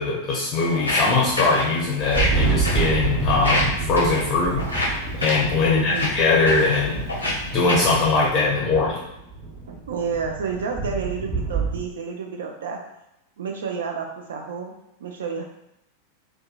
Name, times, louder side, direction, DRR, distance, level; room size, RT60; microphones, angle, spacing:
voice 1, 0.0-4.7 5.2-7.0 7.5-9.0, left 3 dB, 35° left, -4 dB, 0.5 m, -21 dB
Walk footsteps, 0.7-8.0, left 1 dB, 80° left, 0.6 m, -28 dB
Thunder, 2.0-11.8, right 4 dB, 30° right, 0.9 m, -28 dB
voice 2, 5.6-6.1 9.7-12.8 13.4-14.7 15.0-15.4, right 5 dB, 60° right, 2 dB, 0.4 m, -30 dB
2.6 x 2.1 x 2.3 m, 0.85 s
figure-of-eight pair, 90°, 0 cm